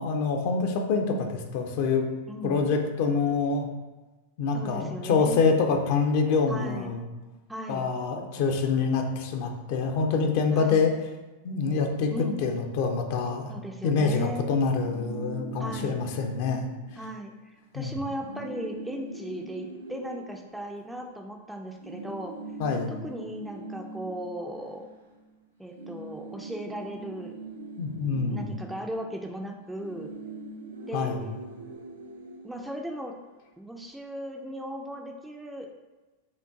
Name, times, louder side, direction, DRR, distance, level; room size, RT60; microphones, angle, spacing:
voice 1, 0.0-2.1 2.4-3.7 4.4-7.0 7.7-10.9 11.4-12.1 12.4-13.5 13.8-16.7 17.7-17.9 22.6-22.9 27.8-28.5 30.9-31.2, left 4 dB, 50° left, 3 dB, 0.6 m, -26 dB
voice 2, 2.3-2.7 4.5-5.5 6.5-6.9 7.5-7.9 10.5-10.9 12.1-12.4 13.5-14.5 15.6-16.0 17.0-22.3 22.9-24.9 25.6-27.3 28.3-30.1 30.9-31.2 32.4-33.1 33.6-35.7, right 1 dB, 5° right, 2 dB, 0.4 m, -37 dB
sound 1, 14.6-17.1 17.4-17.6 17.8-21.2 21.8-25.3 25.6-33.2, right 2 dB, 75° right, 0.7 m, -42 dB
5.2 x 2.5 x 3.6 m, 1.2 s
figure-of-eight pair, 90°, 0 cm